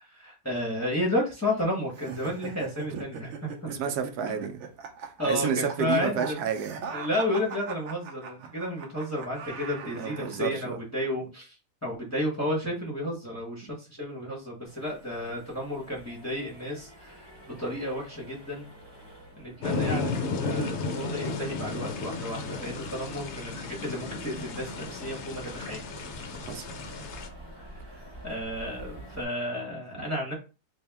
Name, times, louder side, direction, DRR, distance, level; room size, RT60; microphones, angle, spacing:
voice 1, 0.1-3.8 4.3-4.4 5.2-6.4 6.9-11.6 11.8-18.7 19.4-25.8 27.6-30.3, left 1 dB, 15° left, 0.9 m, -32 dB
sound 1, 1.9-10.4, right 5 dB, 60° right, 0.8 m, -41 dB
voice 2, 3.7-4.7 5.3-6.8 9.9-10.8 26.4-26.7, right 7 dB, 80° right, 1.1 m, -30 dB
Accelerating revving vroom, 14.6-29.2, right 1 dB, 20° right, 0.8 m, -48 dB
sound 2, 19.6-27.3, left 3 dB, 65° left, 0.7 m, -33 dB
3.5 x 2.6 x 3.4 m
omnidirectional pair, 1.7 m